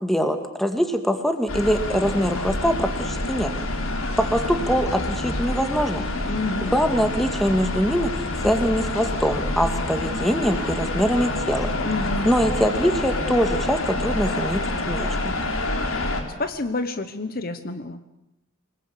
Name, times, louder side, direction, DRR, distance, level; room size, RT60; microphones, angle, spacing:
voice 1, 0.0-3.5 4.2-6.1 6.7-11.7 12.3-15.3, equal, ahead, 6 dB, 2.2 m, -23 dB
sound 1, 1.5-16.2, left 2 dB, 90° left, 3.5 m, -27 dB
voice 2, 6.2-6.7 11.8-12.4 16.4-18.0, left 2 dB, 45° left, 10 dB, 1.2 m, -28 dB
28.5 x 20.5 x 8.5 m, 0.87 s
head